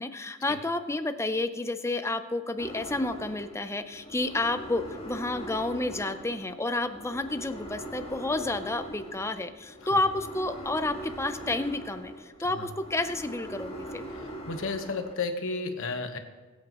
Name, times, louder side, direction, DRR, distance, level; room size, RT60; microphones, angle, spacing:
voice 1, 0.0-14.0, left 2 dB, 15° left, 9 dB, 0.6 m, -30 dB
sound 1, 2.6-15.1, equal, 30° left, 1.8 m, -42 dB
voice 2, 14.1-16.2, left 3 dB, 65° left, 6 dB, 1.2 m, -33 dB
22.0 x 8.6 x 3.0 m, 1.3 s
head